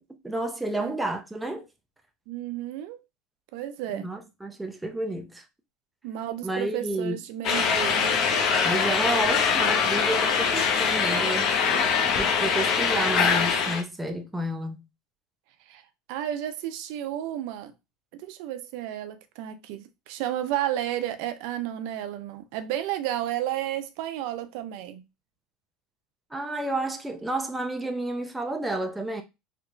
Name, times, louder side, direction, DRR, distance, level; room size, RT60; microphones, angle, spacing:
voice 1, 0.2-1.6 3.9-5.4 6.4-7.2 8.6-11.5 12.2-14.8 26.3-29.2, right 1 dB, 5° right, 0.5 m, -30 dB
voice 2, 2.3-3.0 3.5-4.1 6.0-8.1 15.7-15.8 16.1-17.7 18.1-25.0, right 12 dB, 70° right, 0.4 m, -32 dB
sound 1, 7.4-13.8, left 6 dB, 50° left, 0.7 m, -23 dB
3.3 x 2.8 x 2.5 m
supercardioid pair, 130°, 0 cm